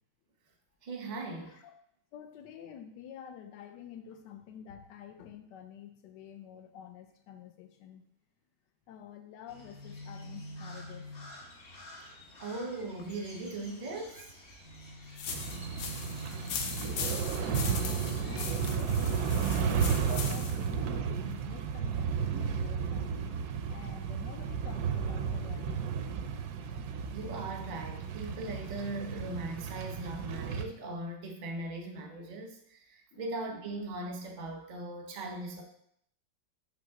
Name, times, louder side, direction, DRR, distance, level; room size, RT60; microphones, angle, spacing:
voice 1, 0.8-1.6 12.4-14.3 27.1-35.6, right 2 dB, 40° right, 2 dB, 0.6 m, -39 dB
voice 2, 1.4-1.7 2.1-8.0 8.9-11.1 16.8-23.1 23.7-26.0 33.1-33.2, left 9 dB, 75° left, 7 dB, 1.2 m, -49 dB
Crow, 9.5-18.5, equal, 45° left, 0.8 m, -47 dB
sound 1, 15.2-20.7, left 6 dB, 90° left, 1.5 m, -39 dB
sound 2, 15.3-30.6, right 6 dB, 75° right, 0.9 m, -33 dB
6.1 x 3.2 x 5.7 m, 0.70 s
omnidirectional pair, 2.1 m